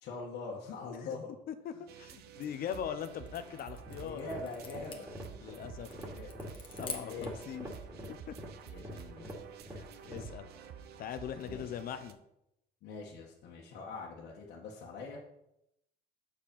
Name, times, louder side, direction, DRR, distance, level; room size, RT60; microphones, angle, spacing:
voice 1, 0.0-1.3 1.7-1.8 4.0-5.1 6.0-6.3 7.0-7.3 8.7-9.3 11.4-11.7 12.8-15.2, left 4 dB, 75° left, -5 dB, 1.6 m, -43 dB
voice 2, 1.5-4.2 5.4-6.0 6.7-7.8 8.3-8.4 9.7-10.5 11.0-12.2, left 9 dB, 60° left, 10 dB, 0.9 m, -41 dB
sound 1, 1.9-12.1, right 9 dB, 70° right, 0.8 m, -51 dB
sound 2, 2.9-7.5, left 4 dB, 30° left, 1.6 m, -48 dB
sound 3, 3.7-10.4, equal, 15° right, 2.5 m, -45 dB
7.4 x 6.8 x 5.4 m, 0.83 s
cardioid pair, 110°, 17 cm